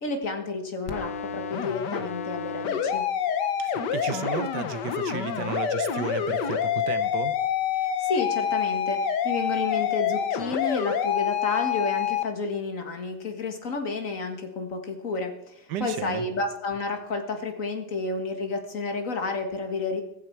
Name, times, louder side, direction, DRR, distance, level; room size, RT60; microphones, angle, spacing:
voice 1, 0.0-3.0 7.8-20.0, left 3 dB, 50° left, 5 dB, 2.0 m, -31 dB
sound 1, 0.9-12.2, left 8 dB, 85° left, 1.7 m, -27 dB
voice 2, 3.6-7.3 15.7-16.3, right 9 dB, 85° right, 14 dB, 1.5 m, -34 dB
15.0 x 15.0 x 4.6 m, 0.84 s
omnidirectional pair, 1.8 m